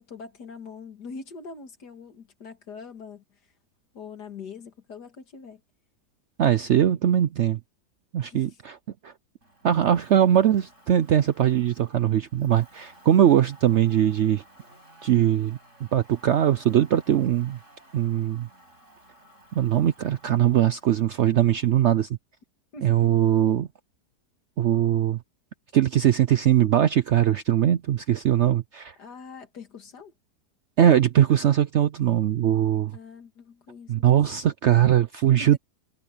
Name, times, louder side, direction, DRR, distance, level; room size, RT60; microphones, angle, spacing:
voice 1, 0.0-3.4 3.9-5.6 8.2-8.6 22.7-23.1 29.0-30.1 32.9-34.1 35.4-35.6, left 5 dB, 80° left, 2.6 m, -43 dB
voice 2, 6.4-7.6 8.1-8.8 9.0-9.1 9.6-14.4 15.0-15.6 15.9-17.6 17.9-18.5 19.5-22.1 22.8-23.7 24.6-25.2 25.7-29.0 30.8-33.0 33.9-35.6, right 11 dB, 65° right, 0.7 m, -21 dB
Motor vehicle (road), 9.4-21.9, right 1 dB, 45° right, 7.7 m, -55 dB
omnidirectional pair, 1.7 m